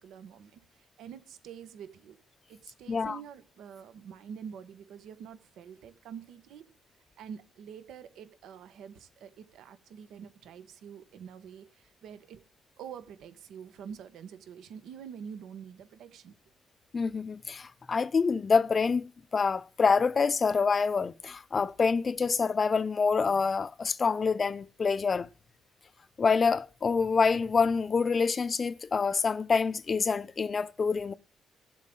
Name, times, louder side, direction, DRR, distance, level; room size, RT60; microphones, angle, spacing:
voice 1, 0.0-2.2 2.5-6.6 7.2-12.4 12.8-16.3, right 7 dB, 80° right, 1.2 m, -46 dB
voice 2, 16.9-19.1 19.3-25.3 26.2-31.1, left 5 dB, 40° left, 0.5 m, -26 dB
17.5 x 7.5 x 3.8 m
cardioid pair, 90°, 0 cm